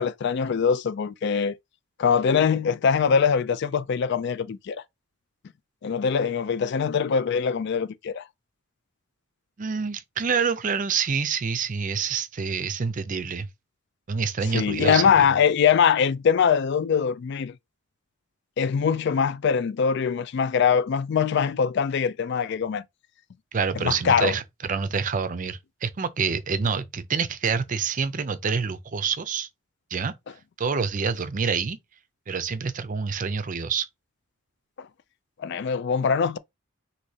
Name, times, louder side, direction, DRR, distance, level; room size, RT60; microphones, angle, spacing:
voice 1, 0.0-1.5 2.0-4.8 5.8-8.2 14.5-17.5 18.6-22.8 23.8-24.3 35.4-36.4, left 6 dB, 55° left, 0.3 m, -22 dB
voice 2, 9.6-13.5 14.1-15.1 23.5-29.5 29.9-30.1 30.6-31.8 32.3-33.9, right 5 dB, 40° right, 0.5 m, -27 dB
6.3 x 2.7 x 2.7 m
head